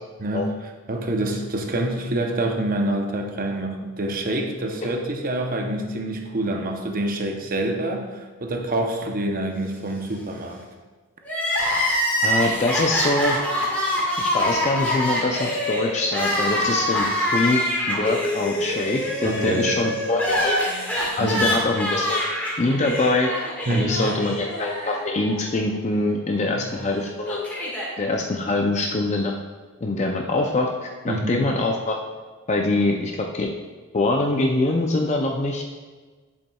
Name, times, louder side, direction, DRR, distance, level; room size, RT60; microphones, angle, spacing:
voice 1, 0.2-10.6 19.2-19.8 21.2-21.5 23.7-24.2 26.4-26.7 31.1-31.5, right 1 dB, 40° right, 3 dB, 0.7 m, -26 dB
Crying sobbing, 11.2-25.4 25.7-25.8 26.8-27.9, left 1 dB, 5° left, 1.6 m, -25 dB
voice 2, 12.2-13.4 14.2-17.6 17.9-20.6 21.2-22.2 22.6-27.4 28.0-29.3 29.8-32.0 32.5-33.5 33.9-35.6, left 2 dB, 30° left, 1 dB, 0.5 m, -24 dB
8.1 x 7.1 x 2.3 m, 1.4 s
head